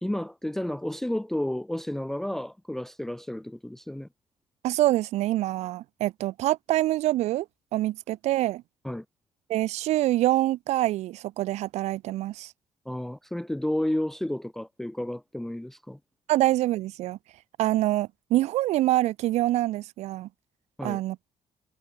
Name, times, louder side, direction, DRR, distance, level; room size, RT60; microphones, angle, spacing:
voice 1, 0.0-4.1 8.8-9.0 12.9-16.0 20.8-21.0, left 1 dB, 5° left, 0.5 m, -31 dB
voice 2, 4.6-7.5 7.7-8.6 9.5-12.5 16.3-17.2 17.6-20.3 20.8-21.2, right 15 dB, 75° right, 0.4 m, -25 dB
cardioid pair, 175°, 12 cm